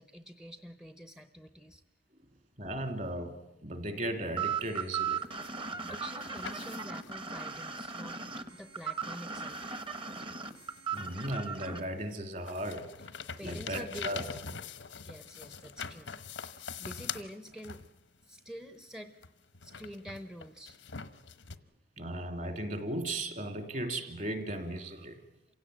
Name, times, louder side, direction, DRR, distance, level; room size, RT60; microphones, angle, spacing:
voice 1, 0.0-1.8 5.8-9.7 13.4-14.1 15.0-16.1 16.5-17.8 18.2-19.1 19.6-20.8, equal, 5° right, 10 dB, 0.8 m, -47 dB
voice 2, 2.6-3.4 3.6-5.3 10.9-12.8 13.4-14.2 22.0-25.2, right 1 dB, 45° right, 7 dB, 2.8 m, -36 dB
sound 1, 4.4-11.8, right 6 dB, 30° right, 1.2 m, -37 dB
sound 2, 5.2-7.2 8.8-8.9 9.5-11.6 12.0-18.2 19.2-21.6, left 6 dB, 85° left, 1.1 m, -44 dB
27.5 x 16.5 x 9.1 m, 0.94 s
head